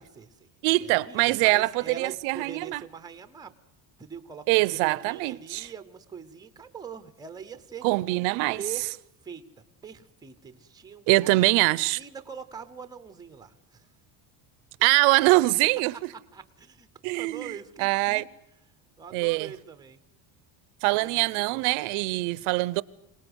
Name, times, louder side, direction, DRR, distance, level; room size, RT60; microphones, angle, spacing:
voice 1, 0.0-3.5 4.0-7.9 8.6-9.0 9.2-9.4 9.8-11.4 11.9-13.9 16.3-16.9 17.1-18.3 19.0-20.0 20.9-21.7, right 6 dB, 10° right, 0.8 m, -43 dB
voice 2, 0.6-2.8 4.5-5.7 7.8-8.6 11.1-12.0 14.8-16.0 17.0-18.2 19.1-19.5 20.8-22.8, right 22 dB, 90° right, 0.8 m, -23 dB
26.0 x 18.5 x 8.0 m
cardioid pair, 175°, 46 cm